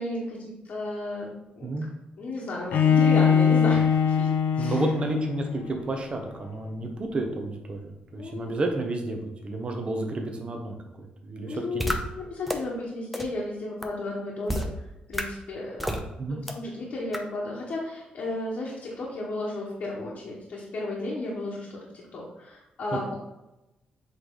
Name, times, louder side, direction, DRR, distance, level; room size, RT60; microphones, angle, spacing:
voice 1, 0.0-1.7 2.2-4.3 4.6-4.8 8.1-8.5 11.5-14.7 15.1-15.9 16.3-23.1, left 2 dB, 65° left, -5 dB, 1.3 m, -33 dB
Bowed string instrument, 2.7-5.7, left 7 dB, 80° left, 0.6 m, -22 dB
voice 2, 4.6-12.0 15.8-16.4 22.9-23.0, right 2 dB, 35° right, 3 dB, 1.0 m, -31 dB
sound 1, 11.8-12.0 12.5-12.6 13.1-13.2 13.8-13.9 14.5-14.7 15.1-15.2 15.8-16.0 16.5-16.6 17.1-17.2, equal, 5° right, 0.7 m, -28 dB
7.7 x 3.3 x 3.9 m, 0.95 s
cardioid pair, 115°, 3 cm